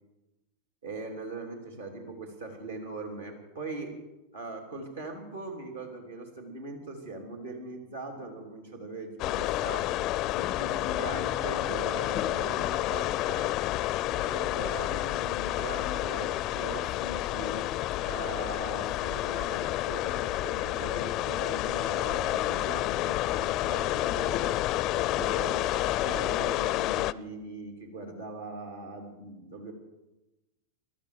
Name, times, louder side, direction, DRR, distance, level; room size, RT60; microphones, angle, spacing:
voice 1, 0.8-4.0 4.3-10.0 10.3-13.5 14.0-17.7 18.0-24.6 24.9-29.7, right 2 dB, 75° right, 2 dB, 3.1 m, -40 dB
sound 1, 9.2-27.1, left 16 dB, 40° left, 0.4 m, -29 dB
21.5 x 12.5 x 4.9 m, 1.0 s
figure-of-eight pair, 85°, 0 cm